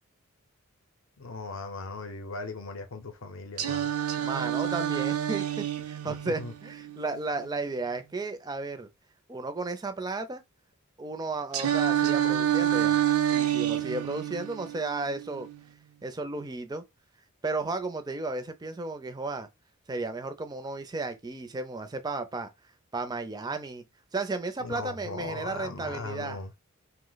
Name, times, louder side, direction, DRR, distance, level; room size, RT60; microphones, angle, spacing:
voice 1, 1.2-3.9 6.0-6.5 24.6-26.5, left 3 dB, 60° left, 0.6 m, -38 dB
Singing, 3.6-7.6 11.5-15.6, right 11 dB, 80° right, 0.5 m, -28 dB
voice 2, 4.2-8.9 9.3-10.4 11.0-13.0 13.3-15.5 16.0-16.8 17.4-19.5 19.9-22.5 22.9-23.8 24.1-26.4, right 3 dB, 20° right, 0.4 m, -34 dB
2.7 x 2.0 x 3.9 m
head